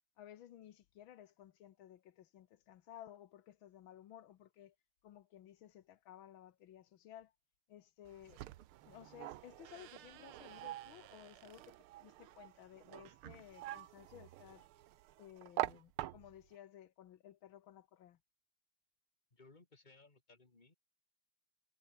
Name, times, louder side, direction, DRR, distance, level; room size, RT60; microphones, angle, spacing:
voice 1, 0.2-4.8 5.0-7.3 7.7-8.4 8.8-14.7 15.2-18.2, left 11 dB, 70° left, 1.7 m, -57 dB
sound 1, 8.0-16.6, right 14 dB, 80° right, 1.7 m, -46 dB
voice 2, 19.3-20.7, left 3 dB, 20° left, 2.2 m, -63 dB
omnidirectional pair, 2.3 m